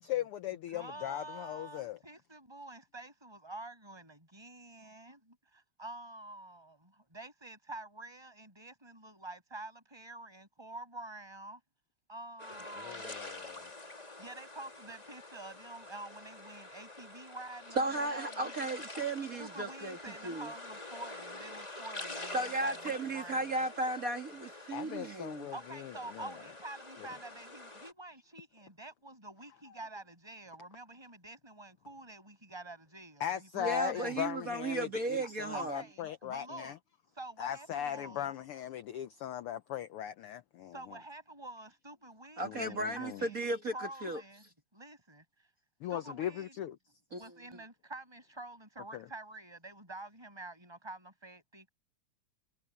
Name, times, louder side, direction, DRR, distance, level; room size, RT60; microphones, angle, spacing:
voice 1, 0.0-2.0 12.7-13.7 24.7-26.2 33.2-36.7 37.4-40.7 42.4-43.2 45.8-46.8 48.9-49.0, left 11 dB, 85° left, 1.2 m, -39 dB
voice 2, 0.7-11.6 12.1-13.2 14.2-18.5 19.4-23.7 25.5-34.2 35.2-36.8 37.1-38.3 40.7-43.4 43.7-45.2 45.9-46.6 47.1-51.7, right 2 dB, 10° right, 7.1 m, -48 dB
sound 1, 12.4-27.9, left 2 dB, 15° left, 2.6 m, -47 dB
voice 3, 17.8-20.0 20.2-20.5 22.3-25.5 33.6-35.8 42.4-44.2 47.1-47.2, right 2 dB, 30° right, 2.2 m, -35 dB
omnidirectional pair, 3.4 m